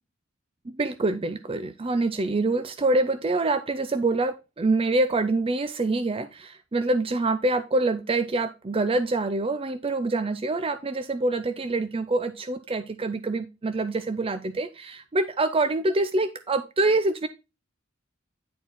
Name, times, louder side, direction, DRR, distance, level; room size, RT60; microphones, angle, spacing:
voice 1, 0.6-17.3, right 2 dB, 25° right, 11 dB, 0.5 m, -25 dB
10.0 x 4.7 x 4.0 m, 0.27 s
head